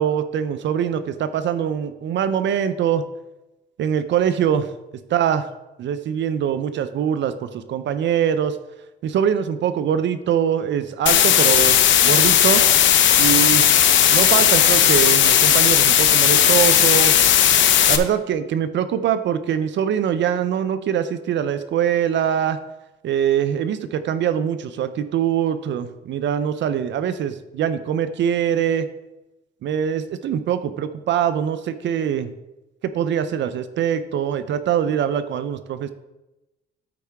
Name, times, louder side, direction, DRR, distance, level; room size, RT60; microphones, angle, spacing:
voice 1, 0.0-3.0 3.8-4.7 5.1-5.5 5.8-8.6 9.0-12.6 13.2-13.7 14.1-17.2 17.9-22.6 23.0-28.9 29.6-32.3 32.8-35.9, right 9 dB, 65° right, 12 dB, 0.5 m, -23 dB
sound 1, 11.1-18.0, left 10 dB, 70° left, 0.8 m, -15 dB
13.0 x 4.7 x 3.4 m, 1.0 s
cardioid pair, 90°, 20 cm